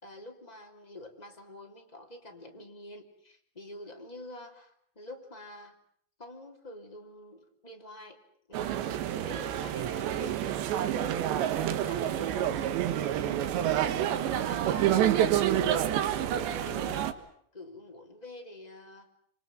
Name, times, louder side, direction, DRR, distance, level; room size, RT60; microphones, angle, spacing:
voice 1, 0.0-5.7 6.2-8.2 8.5-17.2 17.5-19.1, left 1 dB, 10° left, 2 dB, 2.4 m, -47 dB
sound 1, 8.5-17.1, right 11 dB, 85° right, 3.6 m, -28 dB
26.5 x 25.5 x 7.6 m, 0.66 s
omnidirectional pair, 5.0 m